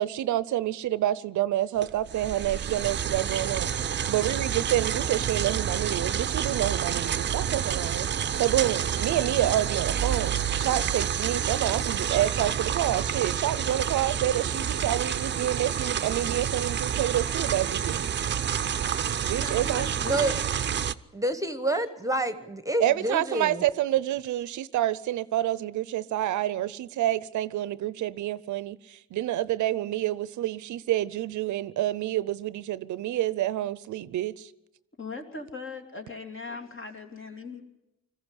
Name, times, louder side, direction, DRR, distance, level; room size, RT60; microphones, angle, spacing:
voice 1, 0.0-18.0 19.2-19.9 22.8-34.5, right 13 dB, 75° right, 0.7 m, -28 dB
sound 1, 1.8-20.9, right 8 dB, 35° right, 0.7 m, -29 dB
voice 2, 19.4-20.5 35.0-37.6, left 3 dB, 40° left, 3.0 m, -39 dB
voice 3, 20.0-20.4 21.1-23.6, right 1 dB, 10° right, 1.2 m, -28 dB
20.5 x 15.0 x 10.0 m
cardioid pair, 90°, 30 cm